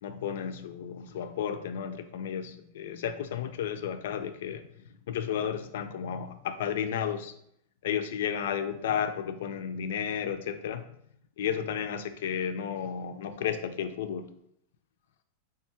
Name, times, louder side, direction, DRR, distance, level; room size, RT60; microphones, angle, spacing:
voice 1, 0.0-4.7 5.1-7.3 7.8-10.9 11.4-14.3, left 8 dB, 65° left, 0.4 m, -33 dB
3.3 x 2.3 x 4.3 m
supercardioid pair, 175°, 0 cm